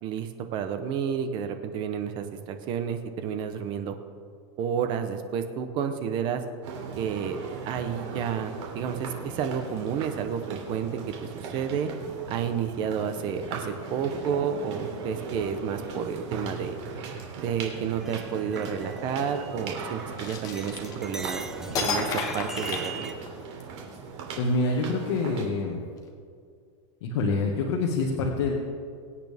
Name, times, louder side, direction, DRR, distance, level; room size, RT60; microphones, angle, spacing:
voice 1, 0.0-3.9 4.6-6.4 7.0-7.4 7.6-10.9 11.3-11.9 12.3-16.8 17.4-21.4 21.7-23.1, right 7 dB, 30° right, 8 dB, 0.9 m, -30 dB
sound 1, 6.6-25.5, right 5 dB, 60° right, 3.1 m, -38 dB
sound 2, 18.0-20.1 20.4-23.1, right 3 dB, 5° right, 0.4 m, -41 dB
sound 3, 20.2-21.3 21.7-23.6, left 4 dB, 20° left, 1.3 m, -31 dB
voice 2, 24.4-25.8 27.0-28.5, left 3 dB, 60° left, -1 dB, 1.8 m, -26 dB
23.0 x 8.7 x 3.5 m, 2.2 s
supercardioid pair, 170°, 17 cm